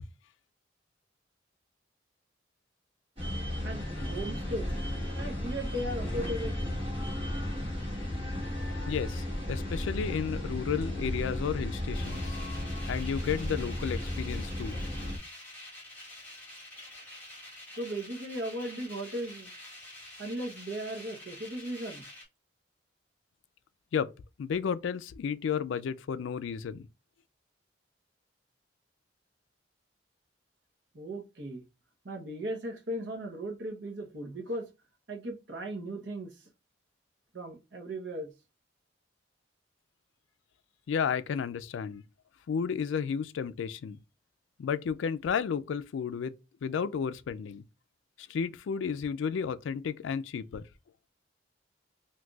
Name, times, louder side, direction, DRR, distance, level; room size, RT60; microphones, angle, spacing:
sound 1, 3.2-15.2, left 1 dB, 30° right, 1.4 m, -34 dB
voice 1, 3.6-4.7 5.1-6.8 17.8-19.5 20.2-22.0 30.9-31.6 32.0-34.7 35.1-36.5 37.3-38.3, right 1 dB, 70° right, 0.9 m, -37 dB
voice 2, 8.9-12.4 12.9-14.8 23.9-24.1 24.4-26.9 40.9-42.0 42.5-44.0 44.6-46.3 46.6-47.6 48.2-50.6, left 7 dB, 80° left, 0.3 m, -32 dB
sound 2, 11.9-22.2, left 1 dB, 10° left, 1.2 m, -47 dB
3.8 x 2.6 x 2.3 m
head